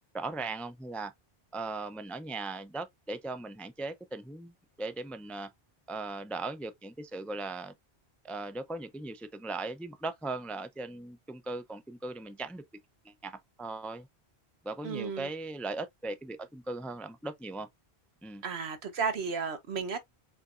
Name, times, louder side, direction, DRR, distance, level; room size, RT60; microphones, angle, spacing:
voice 1, 0.1-1.1 1.5-4.5 4.8-5.5 5.9-7.7 8.2-12.6 13.0-14.1 14.6-17.7 18.2-18.4, right 3 dB, ahead, 0.4 m, -38 dB
voice 2, 14.8-15.3 18.4-20.0, right 5 dB, 85° right, 1.3 m, -33 dB
5.1 x 4.0 x 2.5 m
omnidirectional pair, 1.1 m